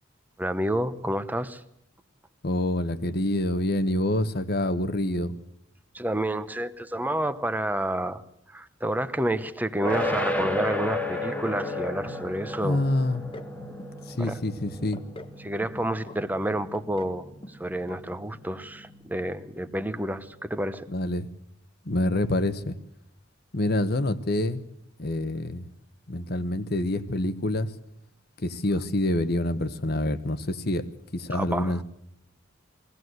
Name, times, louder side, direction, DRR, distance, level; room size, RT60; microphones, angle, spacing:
voice 1, 0.4-1.6 5.9-8.2 8.5-12.8 14.2-14.3 15.4-20.8 31.3-31.8, right 1 dB, 10° right, 11 dB, 0.9 m, -29 dB
voice 2, 2.4-5.3 12.6-13.2 14.1-15.0 20.9-21.3 21.8-22.8 23.5-24.6 25.0-25.7 26.1-27.7 28.4-30.8 31.1-31.8, left 1 dB, 55° left, 13 dB, 1.2 m, -26 dB
sound 1, 9.8-20.8, left 1 dB, 5° left, 1.7 m, -34 dB
sound 2, 13.1-13.5 13.8-14.4 14.7-15.4 15.6-16.2 16.5-17.2 17.4-17.6 17.9-18.0 18.3-18.4, left 1 dB, 25° left, 1.1 m, -44 dB
22.5 x 16.5 x 7.9 m, 0.74 s
head